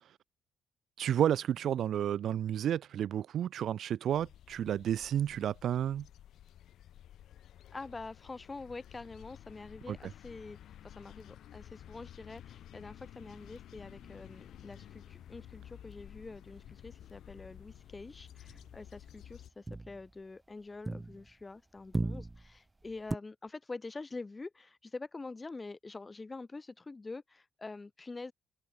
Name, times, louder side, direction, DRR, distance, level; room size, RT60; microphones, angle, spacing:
voice 1, 1.0-6.1 9.9-10.0, right 10 dB, 70° right, 0.4 m, -31 dB
sound 1, 4.1-19.5, left 11 dB, 75° left, 1.1 m, -53 dB
voice 2, 7.7-28.3, left 3 dB, 25° left, 0.9 m, -46 dB
sound 2, 13.0-16.7 17.0-17.4 17.6-21.5 21.8-23.1, right 2 dB, 15° right, 1.2 m, -41 dB
open air
cardioid pair, 90°, 0 cm